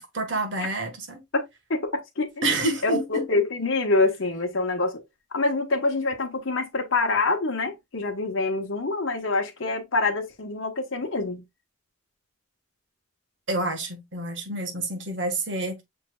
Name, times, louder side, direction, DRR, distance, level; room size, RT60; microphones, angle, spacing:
voice 1, 0.0-1.2 2.4-3.3 13.5-15.8, right 2 dB, 65° right, 1.4 m, -28 dB
voice 2, 1.7-2.3 2.8-5.0 5.3-11.4, left 3 dB, 85° left, 1.1 m, -25 dB
6.6 x 3.2 x 2.3 m
head